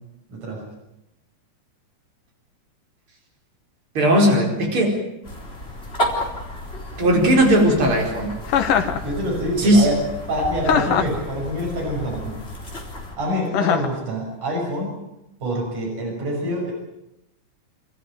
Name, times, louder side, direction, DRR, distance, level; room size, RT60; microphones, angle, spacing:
voice 1, 0.3-0.6 9.0-10.0 10.3-12.3 13.2-14.9 15.4-16.7, equal, 75° right, -2 dB, 7.7 m, -26 dB
voice 2, 4.0-4.9 7.0-8.3 9.6-9.9, equal, 40° right, 0 dB, 5.6 m, -17 dB
sound 1, 5.2-13.2, equal, 20° left, 4.3 m, -32 dB
Chuckle chortle, 8.5-9.0 10.6-11.2 13.5-14.0, left 8 dB, 90° left, 3.0 m, -20 dB
29.5 x 14.0 x 9.5 m, 0.87 s
omnidirectional pair, 3.6 m